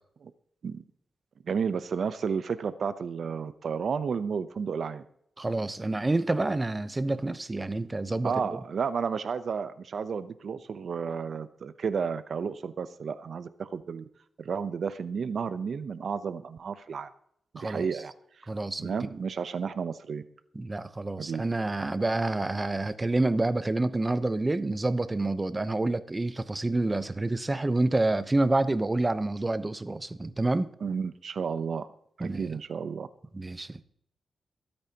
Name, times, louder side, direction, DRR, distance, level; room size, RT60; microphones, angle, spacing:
voice 1, 1.4-5.0 8.2-14.0 14.4-17.1 17.5-18.1 18.8-20.2 21.2-21.4 30.8-31.9 32.2-33.1, right 6 dB, 70° right, 0.7 m, -32 dB
voice 2, 5.4-8.3 17.6-17.9 18.5-19.1 20.5-30.7 32.2-32.5 33.3-33.8, right 2 dB, 25° right, 0.8 m, -28 dB
23.5 x 8.7 x 2.9 m
cardioid pair, 80°, 0 cm